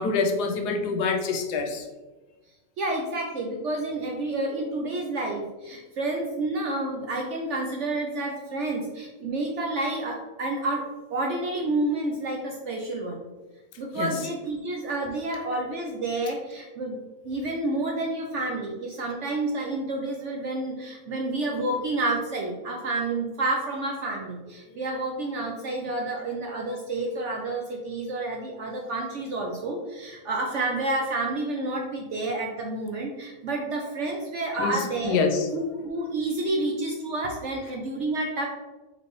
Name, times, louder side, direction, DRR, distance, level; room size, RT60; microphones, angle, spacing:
voice 1, 0.0-1.8 14.0-14.1 34.6-34.8 35.0-35.5, left 4 dB, 85° left, 4 dB, 1.2 m, -25 dB
voice 2, 2.8-13.3 13.8-17.0 17.2-35.2 35.5-38.5, right 2 dB, 70° right, 0 dB, 0.7 m, -29 dB
4.1 x 3.3 x 3.1 m, 1.2 s
omnidirectional pair, 1.7 m